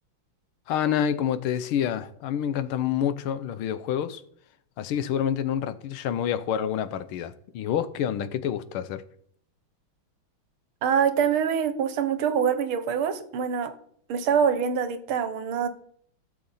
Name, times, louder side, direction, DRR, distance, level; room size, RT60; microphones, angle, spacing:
voice 1, 0.7-4.2 4.8-9.0, left 9 dB, 85° left, 1.6 m, -28 dB
voice 2, 10.8-13.7 14.1-15.7, right 7 dB, 80° right, 1.8 m, -25 dB
15.0 x 6.8 x 4.1 m
omnidirectional pair, 2.3 m